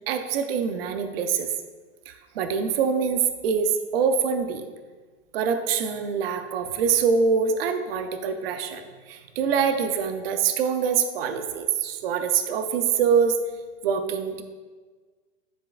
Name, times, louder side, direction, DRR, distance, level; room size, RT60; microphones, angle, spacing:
voice 1, 0.1-1.5 2.1-4.6 5.3-13.4 13.8-14.4, right 6 dB, 55° right, 8 dB, 0.6 m, -24 dB
11.0 x 4.6 x 2.5 m, 1.4 s
supercardioid pair, 155°, 36 cm